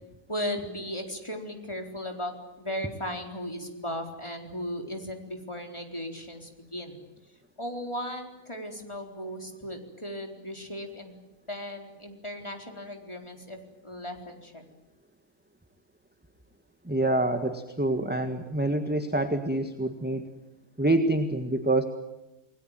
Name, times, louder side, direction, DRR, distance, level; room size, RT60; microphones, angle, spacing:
voice 1, 0.3-7.0 7.6-11.1 11.5-13.6 13.8-14.6, equal, 20° left, 3 dB, 4.3 m, -36 dB
voice 2, 16.8-20.3 20.8-21.8, right 2 dB, 5° right, 7 dB, 1.7 m, -26 dB
29.5 x 20.5 x 9.2 m, 1.0 s
omnidirectional pair, 1.4 m